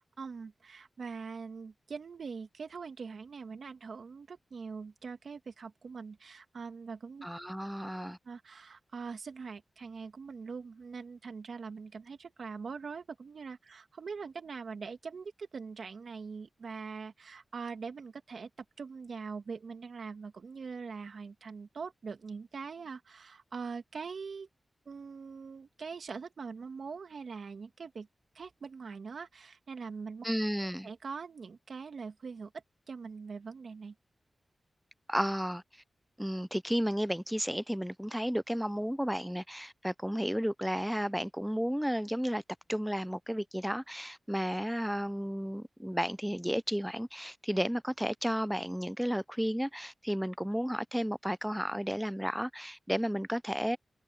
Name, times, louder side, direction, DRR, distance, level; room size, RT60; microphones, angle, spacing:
voice 1, 0.0-7.3 8.3-18.5 18.8-24.5 24.9-28.1 28.3-30.3 30.8-32.5 32.9-33.9, right 5 dB, 75° right, 2.2 m, -43 dB
voice 2, 7.2-8.2 30.2-30.9 35.1-35.6 36.2-42.4 42.7-53.8, equal, 5° right, 0.4 m, -33 dB
cardioid pair, 50°, 0 cm